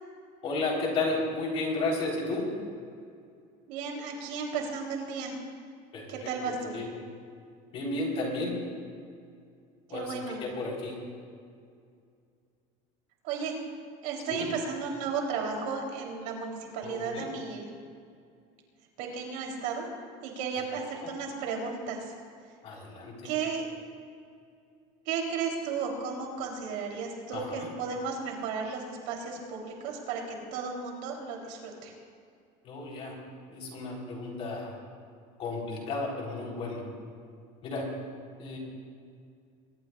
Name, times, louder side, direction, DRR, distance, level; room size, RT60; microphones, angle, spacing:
voice 1, 0.4-2.5 5.9-6.3 6.7-6.9 7.7-8.5 9.9-10.9 14.3-14.5 16.8-17.3 22.6-23.1 27.3-27.7 32.6-33.1 33.5-34.7 35.4-36.8 37.6-37.8 38.4-38.6, left 2 dB, 35° left, -1 dB, 4.0 m, -33 dB
voice 2, 3.7-5.3 6.1-6.7 9.9-10.4 13.2-13.6 14.0-17.7 19.0-19.9 20.2-22.1 23.2-23.6 25.1-31.9, right 5 dB, 70° right, 0 dB, 3.6 m, -34 dB
22.5 x 20.0 x 2.5 m, 2.3 s
cardioid pair, 175°, 17 cm